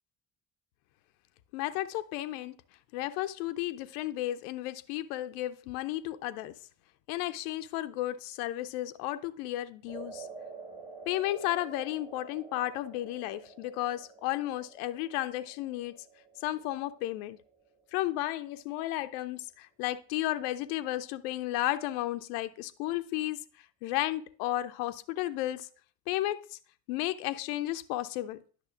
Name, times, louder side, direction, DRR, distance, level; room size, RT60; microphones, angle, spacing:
voice 1, 1.5-2.5 2.9-6.5 7.1-10.3 11.1-16.0 16.4-17.4 17.9-23.4 23.8-25.7 26.1-26.6 26.9-28.4, left 15 dB, 70° left, 0.6 m, -33 dB
sound 1, 9.9-18.2, right 5 dB, 10° right, 1.6 m, -49 dB
10.5 x 6.0 x 2.4 m
figure-of-eight pair, 50°, 46 cm